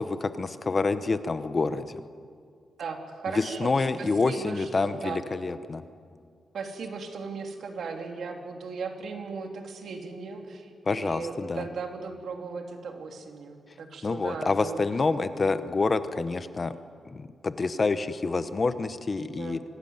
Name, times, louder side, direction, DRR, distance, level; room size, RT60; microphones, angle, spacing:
voice 1, 0.0-2.0 3.3-5.8 10.9-11.6 14.0-16.7 17.1-19.6, left 3 dB, 30° left, 11 dB, 0.9 m, -27 dB
voice 2, 2.8-5.2 6.5-14.8 19.3-19.6, right 4 dB, 65° right, 4 dB, 3.0 m, -37 dB
25.5 x 17.5 x 9.4 m, 2.2 s
wide cardioid pair, 150°, 0 cm